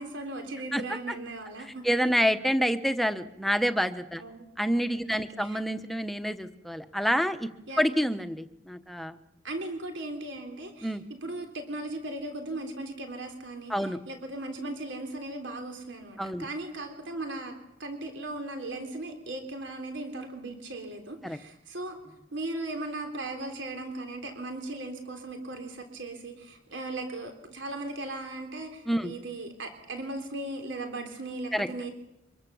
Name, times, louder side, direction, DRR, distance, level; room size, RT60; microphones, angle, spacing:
voice 1, 0.0-1.9 4.2-4.5 5.1-5.6 7.7-8.0 9.4-17.5 17.8-31.9, right 2 dB, 85° right, 5 dB, 3.7 m, -37 dB
voice 2, 1.8-4.2 4.6-7.5 7.8-9.2 10.8-11.0 13.7-14.0 16.2-16.5 21.2-21.4 28.9-29.1 31.5-31.7, equal, ahead, 9 dB, 0.9 m, -27 dB
25.0 x 21.5 x 7.1 m, 0.86 s
head